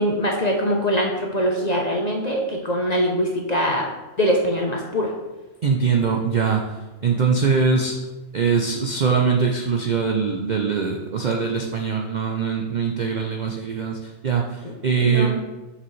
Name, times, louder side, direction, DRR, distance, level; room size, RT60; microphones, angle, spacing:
voice 1, 0.0-3.9 4.2-5.1 14.6-14.7 15.0-15.4, equal, 45° left, 0 dB, 0.5 m, -22 dB
voice 2, 5.6-6.6 7.0-7.9 8.3-14.0 14.2-15.4, right 5 dB, 80° right, 2 dB, 0.4 m, -22 dB
6.8 x 5.9 x 3.2 m, 1.1 s
omnidirectional pair, 1.5 m